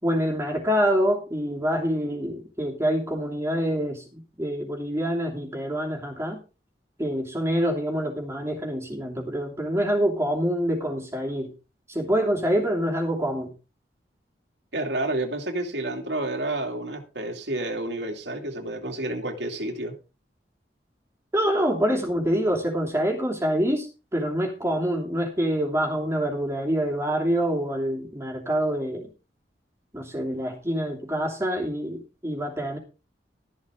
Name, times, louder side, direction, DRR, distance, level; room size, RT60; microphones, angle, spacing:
voice 1, 0.0-6.4 7.0-11.5 11.9-13.5 21.3-29.1 29.9-32.8, equal, 15° right, -1 dB, 2.8 m, -26 dB
voice 2, 14.7-19.9, right 2 dB, 90° right, 3 dB, 2.6 m, -30 dB
13.5 x 11.5 x 3.7 m, 0.31 s
head